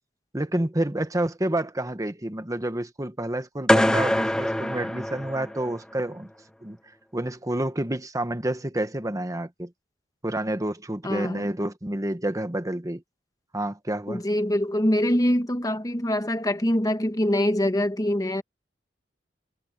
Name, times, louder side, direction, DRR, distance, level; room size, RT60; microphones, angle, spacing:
voice 1, 0.3-6.3 6.6-6.8 7.1-9.7 10.2-13.0 13.5-14.2, right 1 dB, 20° right, 1.2 m, -29 dB
sound 1, 3.7-5.8, left 1 dB, 5° left, 0.5 m, -23 dB
voice 2, 11.0-11.5 14.1-18.4, left 1 dB, 20° left, 1.4 m, -24 dB
head